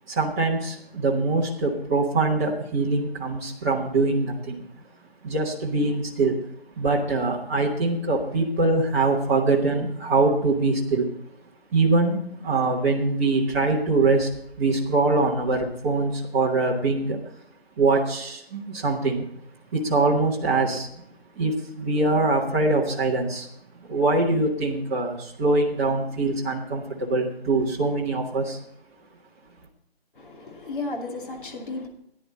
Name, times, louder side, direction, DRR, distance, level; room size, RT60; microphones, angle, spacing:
voice 1, 0.1-4.6 5.2-6.4 6.8-11.1 11.7-14.3 14.6-17.2 17.8-19.2 19.7-21.0 21.3-23.5 23.8-28.6, right 3 dB, 15° right, -4 dB, 1.0 m, -23 dB
voice 2, 30.1-31.9, left 3 dB, 55° left, 1 dB, 2.8 m, -34 dB
14.0 x 9.9 x 4.1 m, 0.70 s
figure-of-eight pair, 160°, 31 cm